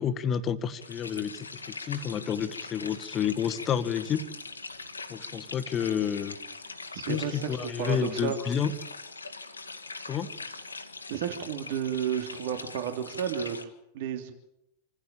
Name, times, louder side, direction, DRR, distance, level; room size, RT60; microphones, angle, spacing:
voice 1, 0.0-4.2 5.1-6.4 7.1-8.7 10.1-10.3, left 8 dB, 25° left, 10 dB, 1.8 m, -30 dB
sound 1, 0.8-13.6, left 3 dB, 80° left, 2.1 m, -42 dB
voice 2, 6.9-8.4 11.1-13.6 13.9-14.3, right 9 dB, 50° right, 6 dB, 3.0 m, -32 dB
27.5 x 15.5 x 8.9 m, 0.80 s
figure-of-eight pair, 90°, 0 cm